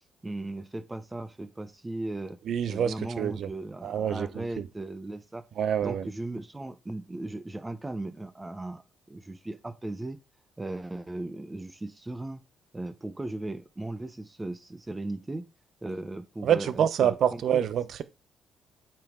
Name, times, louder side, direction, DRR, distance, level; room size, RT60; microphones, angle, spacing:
voice 1, 0.0-2.4 2.7-5.4 5.8-8.8 9.1-10.2 10.6-12.4 12.7-15.5 15.8-17.7, right 2 dB, 15° right, 0.9 m, -37 dB
voice 2, 2.5-3.5 3.8-4.7 5.6-6.1 16.4-18.0, right 9 dB, 65° right, 0.8 m, -27 dB
8.8 x 5.0 x 3.7 m
cardioid pair, 90°, 0 cm